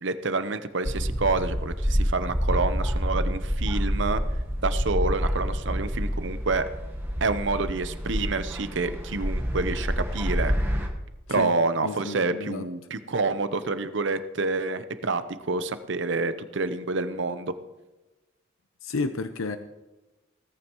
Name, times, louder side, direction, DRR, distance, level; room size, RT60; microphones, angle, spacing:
voice 1, 0.0-4.2 4.6-6.6 7.2-10.5 11.3-17.5, right 3 dB, 60° right, 11 dB, 0.7 m, -28 dB
sound 1, 0.9-10.9, equal, 10° right, 1.2 m, -28 dB
voice 2, 11.8-12.7 18.8-19.6, left 3 dB, 80° left, 9 dB, 0.7 m, -31 dB
17.0 x 14.0 x 3.0 m, 1.1 s
head